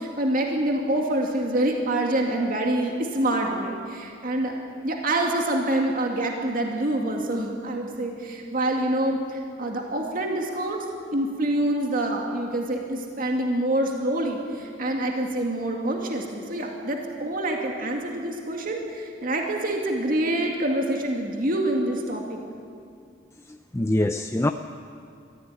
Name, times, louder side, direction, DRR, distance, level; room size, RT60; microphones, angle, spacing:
voice 1, 0.0-4.5 4.8-10.8 11.1-22.4, right 1 dB, 50° right, 1 dB, 2.4 m, -26 dB
voice 2, 23.5-24.5, left 1 dB, 15° left, 7 dB, 0.5 m, -24 dB
22.5 x 15.0 x 9.8 m, 2.4 s
head